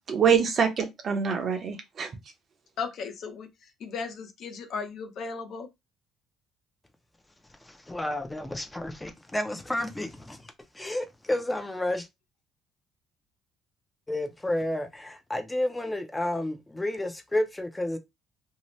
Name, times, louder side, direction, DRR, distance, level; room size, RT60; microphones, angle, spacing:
voice 1, 0.1-2.1, right 6 dB, 40° right, 0.6 m, -25 dB
voice 2, 2.8-3.5 3.8-5.7, left 5 dB, 55° left, 0.6 m, -35 dB
voice 3, 7.6-10.4 10.7-12.1 14.1-18.0, left 1 dB, 10° left, 0.4 m, -31 dB
2.7 x 2.1 x 3.0 m
cardioid pair, 140°, 0 cm